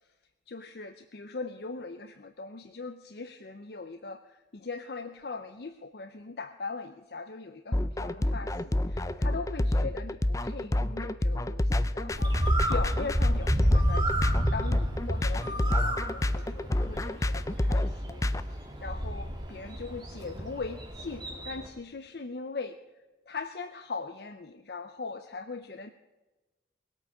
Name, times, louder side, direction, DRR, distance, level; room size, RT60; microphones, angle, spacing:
voice 1, 0.5-22.8 23.3-25.9, left 4 dB, 60° left, 8 dB, 0.7 m, -40 dB
sound 1, 7.7-18.4, left 1 dB, 20° left, 0.4 m, -28 dB
Bird, 12.1-21.7, equal, 25° right, 2.2 m, -31 dB
19.0 x 8.8 x 6.1 m, 1.2 s
head